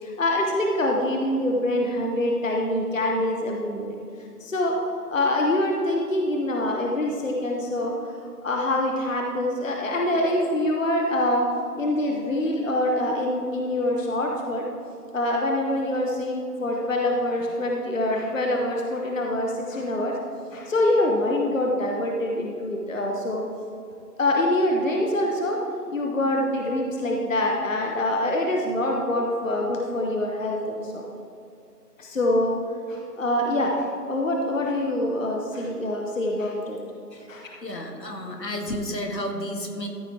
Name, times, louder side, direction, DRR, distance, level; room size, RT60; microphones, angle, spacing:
voice 1, 0.0-4.0 4.4-4.8 5.1-7.9 8.4-11.5 11.8-14.7 15.1-20.2 20.5-23.4 24.2-25.6 25.9-31.0 32.0-32.5 32.9-36.8 37.3-37.6, left 1 dB, 50° left, 0 dB, 1.0 m, -25 dB
voice 2, 37.6-39.9, left 1 dB, 85° left, 3 dB, 1.8 m, -32 dB
14.0 x 7.7 x 2.8 m, 2.6 s
figure-of-eight pair, 170°, 49 cm